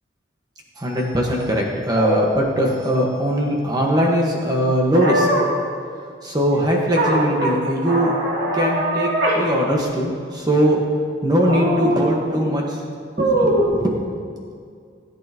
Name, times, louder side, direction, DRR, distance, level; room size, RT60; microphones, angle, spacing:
voice 1, 0.8-5.3 6.2-8.1 8.5-9.1 9.3-10.8 11.2-12.8 13.2-13.9, equal, 20° right, -1 dB, 1.4 m, -20 dB
sound 1, 1.9-2.2 4.9-5.5 6.9-7.5 7.8-9.4 9.8-9.9 11.5-12.0 13.2-13.6, right 1 dB, 70° right, 2.2 m, -21 dB
17.0 x 8.5 x 3.0 m, 2.2 s
head